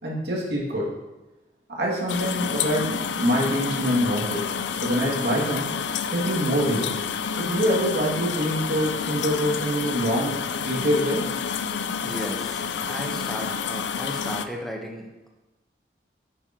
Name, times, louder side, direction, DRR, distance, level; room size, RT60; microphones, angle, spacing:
voice 1, 0.0-0.9 1.7-4.4 4.8-5.7 6.1-6.9 7.3-11.3, equal, 75° right, -4 dB, 2.5 m, -25 dB
sound 1, 2.1-14.5, left 6 dB, 80° left, 0.5 m, -29 dB
voice 2, 12.0-15.3, equal, ahead, -1 dB, 1.1 m, -35 dB
9.8 x 8.8 x 3.1 m, 1.1 s
head